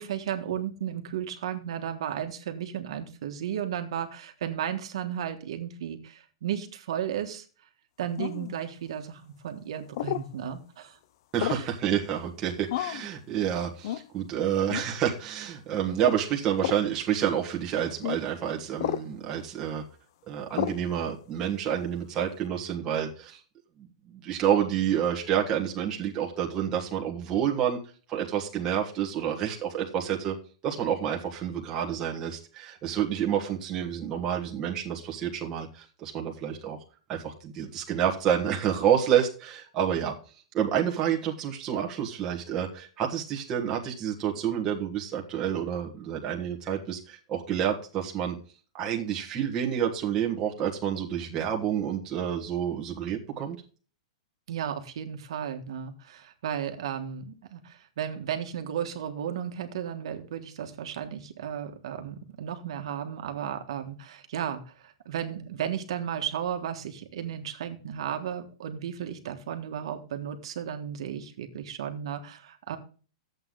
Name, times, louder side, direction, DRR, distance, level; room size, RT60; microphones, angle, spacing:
voice 1, 0.0-7.4 8.0-11.0 11.5-11.7 54.5-72.8, right 9 dB, 65° right, 7 dB, 1.5 m, -34 dB
sound 1, 8.2-8.5 9.9-10.3 11.4-11.7 12.7-13.1 13.8-14.1 14.7-14.9 16.0-16.2 16.6-16.8 18.0-18.2 18.8-19.1 20.5-20.8, left 12 dB, 45° left, 0.4 m, -31 dB
voice 2, 11.3-19.8 20.3-23.4 24.2-27.8 28.1-30.3 30.6-36.8 37.1-40.1 40.5-48.4 48.7-53.6, right 9 dB, 20° right, 0 dB, 1.4 m, -29 dB
11.0 x 7.9 x 3.8 m, 0.38 s
supercardioid pair, 170°, 3 cm